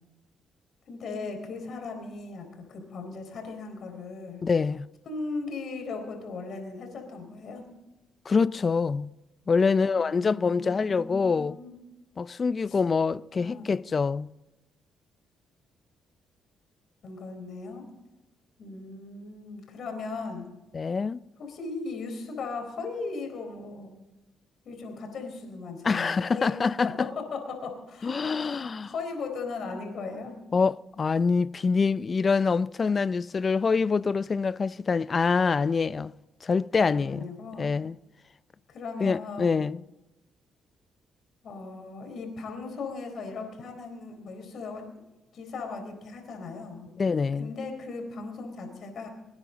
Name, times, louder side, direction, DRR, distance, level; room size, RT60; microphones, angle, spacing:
voice 1, 0.9-4.4 5.1-7.6 9.6-11.8 12.7-12.8 13.3-13.7 17.0-17.8 18.6-20.4 21.4-24.0 24.6-26.6 26.8-30.4 36.8-37.7 38.7-39.7 41.4-44.9 45.3-46.9 47.4-49.1, left 4 dB, 60° left, 4.1 m, -38 dB
voice 2, 4.4-4.9 8.3-9.1 9.5-11.6 12.2-14.3 20.7-21.2 25.8-26.9 28.0-28.9 30.5-36.1 36.4-37.3 37.6-37.9 39.0-39.8 47.0-47.5, left 5 dB, 35° left, 0.4 m, -25 dB
24.0 x 9.9 x 4.0 m
cardioid pair, 90°, 0 cm